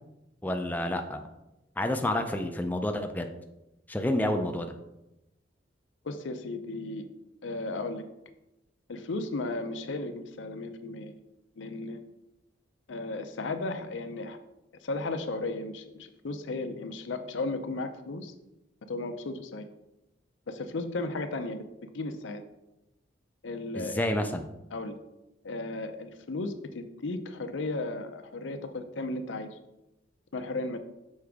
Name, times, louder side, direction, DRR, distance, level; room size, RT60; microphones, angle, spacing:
voice 1, 0.4-1.3 1.8-3.3 3.9-4.7 23.8-24.5, left 1 dB, 10° left, 5 dB, 0.4 m, -29 dB
voice 2, 6.0-7.1 7.4-8.0 8.9-11.2 11.6-12.0 12.9-14.4 14.8-18.3 18.9-19.7 20.5-22.4 23.4-24.0 24.7-25.0 25.4-29.6 30.3-30.8, left 2 dB, 85° left, 8 dB, 0.6 m, -35 dB
6.3 x 4.8 x 3.5 m, 0.92 s
head